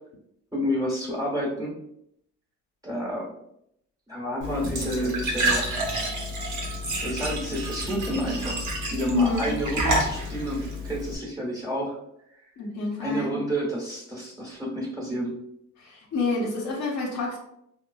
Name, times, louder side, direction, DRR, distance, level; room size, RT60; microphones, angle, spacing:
voice 1, 0.5-1.7 2.8-3.3 4.1-5.7 6.9-12.0 13.0-15.3, equal, 10° right, -3 dB, 1.2 m, -29 dB
Glass / Trickle dribble / Fill (with liquid), 4.4-11.2, right 1 dB, 75° right, 0.9 m, -29 dB
voice 2, 9.1-9.5 12.6-13.3 15.8-17.4, left 4 dB, 65° left, -1 dB, 0.9 m, -27 dB
3.6 x 2.0 x 2.4 m, 0.75 s
cardioid pair, 90°, 30 cm